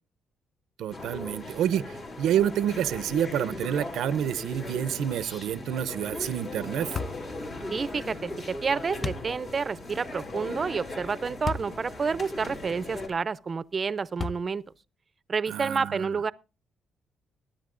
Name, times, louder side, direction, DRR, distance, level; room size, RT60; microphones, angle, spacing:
voice 1, 0.8-7.0 15.5-16.1, right 10 dB, 80° right, 0.6 m, -28 dB
sound 1, 0.9-13.1, left 2 dB, 55° left, 3.5 m, -38 dB
sound 2, 6.9-7.3 9.0-9.3 11.4-11.7 12.4-12.5 14.2-14.7, left 4 dB, 35° left, 0.6 m, -33 dB
voice 2, 7.7-14.6 15.3-16.3, right 5 dB, 40° right, 0.6 m, -29 dB
21.5 x 10.0 x 2.5 m
cardioid pair, 90°, 0 cm